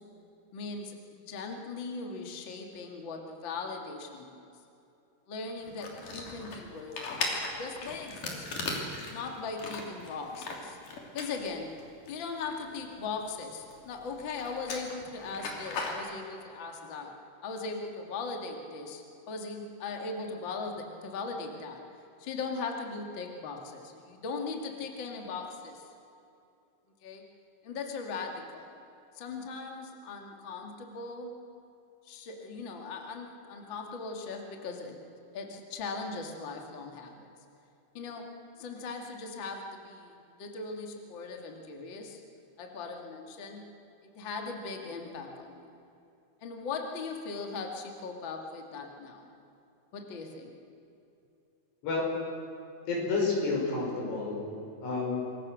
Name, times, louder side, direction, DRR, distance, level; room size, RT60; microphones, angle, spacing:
voice 1, 0.5-4.4 5.3-7.2 7.6-8.7 9.1-11.7 12.1-17.1 17.4-21.8 22.2-25.8 27.0-27.2 27.6-28.7 29.1-31.3 32.0-35.0 35.3-37.2 37.9-38.3 38.6-42.2 42.6-43.7 44.0-45.7 46.4-49.3 49.9-50.5, left 4 dB, 35° left, 2 dB, 2.4 m, -39 dB
sound 1, 5.6-16.0, left 3 dB, 55° left, 4.3 m, -38 dB
voice 2, 52.9-54.5 54.8-55.2, left 3 dB, 90° left, -2 dB, 7.7 m, -30 dB
26.5 x 22.0 x 6.4 m, 2.7 s
omnidirectional pair, 4.7 m